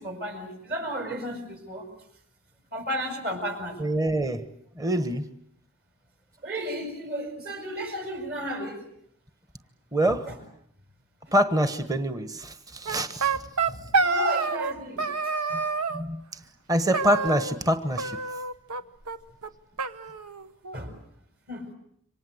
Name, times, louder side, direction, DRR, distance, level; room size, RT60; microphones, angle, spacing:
voice 1, 0.0-1.9 2.7-3.9 6.4-8.8 10.3-10.4 13.7-15.1 20.7-20.9 21.5-21.7, equal, 45° right, 5 dB, 6.5 m, -33 dB
voice 2, 3.8-4.4 4.8-5.3 9.9-10.3 11.3-13.4 15.5-15.6 15.9-16.4 16.7-18.2, right 1 dB, 15° right, 10 dB, 1.3 m, -25 dB
sound 1, 12.9-14.7 15.0-16.0 16.9-17.7 18.0-18.8 19.1-19.2 19.4-19.5 19.8-20.8, right 4 dB, 85° right, 1.3 m, -27 dB
27.5 x 25.0 x 8.0 m, 0.68 s
head